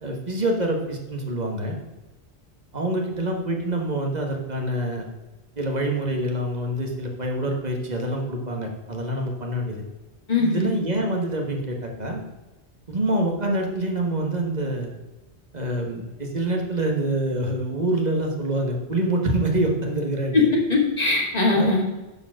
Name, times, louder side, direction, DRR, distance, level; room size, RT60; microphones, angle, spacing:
voice 1, 0.0-1.8 2.7-5.1 5.6-9.8 10.4-12.2 12.9-14.9 15.5-20.5 21.5-21.7, right 1 dB, 40° right, 2 dB, 1.6 m, -26 dB
voice 2, 10.3-10.7 20.3-21.8, left 3 dB, 35° left, -1 dB, 2.2 m, -20 dB
10.5 x 4.8 x 6.3 m, 1.1 s
omnidirectional pair, 1.1 m